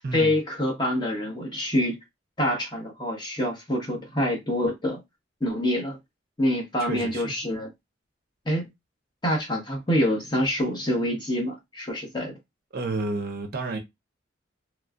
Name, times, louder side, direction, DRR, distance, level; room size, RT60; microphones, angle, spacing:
voice 1, 0.1-2.0 2.4-5.0 5.4-6.0 6.4-7.7 8.4-8.7 9.2-12.4, left 1 dB, 20° left, 0.9 m, -26 dB
voice 2, 6.8-7.4 12.7-13.8, right 3 dB, 50° right, 0.5 m, -30 dB
3.0 x 2.3 x 2.4 m
head